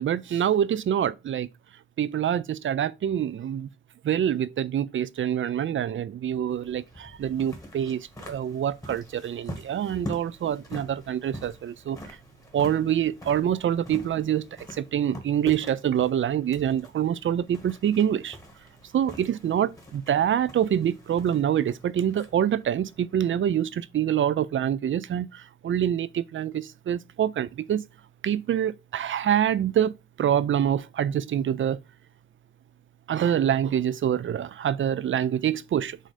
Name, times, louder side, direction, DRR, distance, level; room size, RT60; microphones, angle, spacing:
voice 1, 0.0-1.5 2.0-3.7 4.0-12.2 12.5-14.5 14.8-18.4 18.9-27.8 28.2-29.9 30.2-31.8 33.1-36.0, right 9 dB, 85° right, 0.4 m, -26 dB
sound 1, 6.2-23.8, equal, 15° left, 1.7 m, -44 dB
7.5 x 2.7 x 4.9 m
wide cardioid pair, 115°, 19 cm